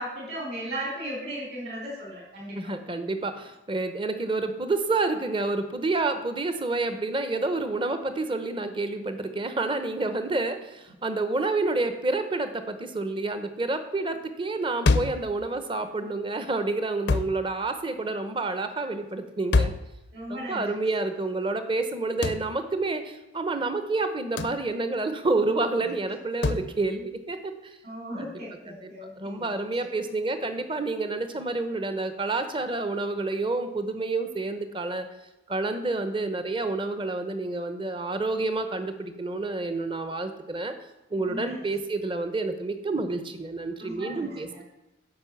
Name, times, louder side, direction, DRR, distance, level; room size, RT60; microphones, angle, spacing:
voice 1, 0.0-2.6 20.1-20.7 27.8-29.8 41.3-41.6 43.8-44.6, right 1 dB, 55° right, -3 dB, 4.4 m, -36 dB
voice 2, 2.5-19.7 20.3-27.7 28.2-28.3 28.7-28.9 29.2-35.1 35.5-40.7 41.1-44.6, right 3 dB, 25° right, 9 dB, 0.8 m, -29 dB
sound 1, 14.9-15.3 17.1-17.4 19.5-19.9 22.2-22.5 24.4-24.6 26.4-26.7, left 3 dB, 60° left, 0.5 m, -24 dB
10.5 x 5.4 x 7.1 m, 0.96 s
head